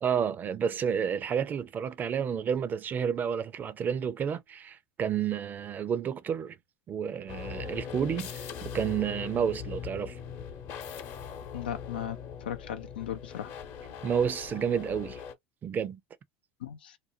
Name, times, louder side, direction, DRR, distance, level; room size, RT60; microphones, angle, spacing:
voice 1, 0.0-6.6 6.9-8.5 8.7-10.2 14.0-15.2 15.6-16.0, right 7 dB, 35° right, 0.5 m, -30 dB
sound 1, 7.3-15.3, left 7 dB, 55° left, 0.8 m, -41 dB
voice 2, 11.5-12.2 12.4-13.5 16.6-17.0, left 10 dB, 90° left, 0.4 m, -37 dB
2.6 x 2.2 x 2.6 m
hypercardioid pair, 85°, 5 cm